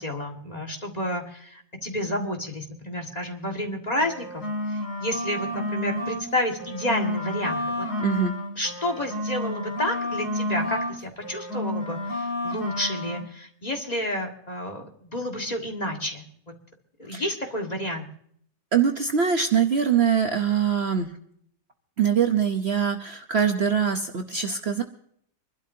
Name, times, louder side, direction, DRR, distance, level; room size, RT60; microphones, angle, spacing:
voice 1, 0.0-4.4 4.7-7.9 8.6-16.3 17.0-18.1, left 1 dB, 25° left, 2 dB, 1.9 m, -30 dB
sound 1, 3.9-6.3 6.6-11.0 11.2-13.2, left 1 dB, 80° left, 3.1 m, -30 dB
voice 2, 8.0-8.3 17.1-17.2 18.7-21.1 22.0-24.8, right 7 dB, 50° right, 4 dB, 1.0 m, -23 dB
26.0 x 12.0 x 2.7 m, 0.65 s
omnidirectional pair, 1.6 m